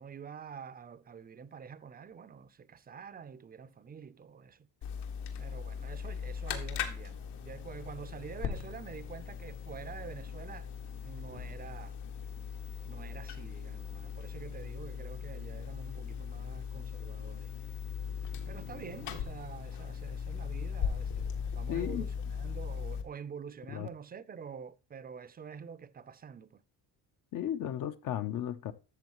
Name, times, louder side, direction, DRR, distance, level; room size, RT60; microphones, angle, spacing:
voice 1, 0.0-4.7 5.4-10.7 11.0-12.0 12.9-17.5 18.5-26.6, right 7 dB, 20° right, 0.5 m, -47 dB
sound 1, 4.8-23.0, left 7 dB, 75° left, 1.9 m, -39 dB
voice 2, 21.7-22.0 23.7-23.9 27.3-28.7, left 10 dB, 50° left, 0.7 m, -34 dB
13.0 x 7.0 x 3.0 m
cardioid pair, 130°, 41 cm